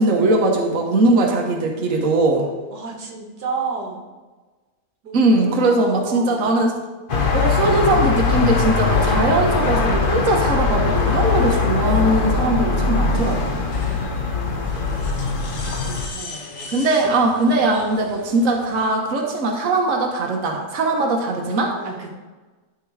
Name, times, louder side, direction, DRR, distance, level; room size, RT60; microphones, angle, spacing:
voice 1, 0.0-2.5 5.1-6.8 7.3-13.6 16.7-21.7, right 2 dB, 55° right, 0 dB, 1.5 m, -20 dB
voice 2, 2.7-4.1 5.0-7.0 14.2-15.5 15.8-16.7 17.0-17.2 17.5-18.0 21.8-22.1, right 4 dB, 90° right, 1 dB, 2.0 m, -34 dB
sound 1, 7.1-16.1, left 4 dB, 40° left, 1.0 m, -21 dB
sound 2, 11.3-18.9, left 3 dB, 90° left, 1.9 m, -40 dB
12.0 x 4.5 x 4.8 m, 1.3 s
omnidirectional pair, 1.7 m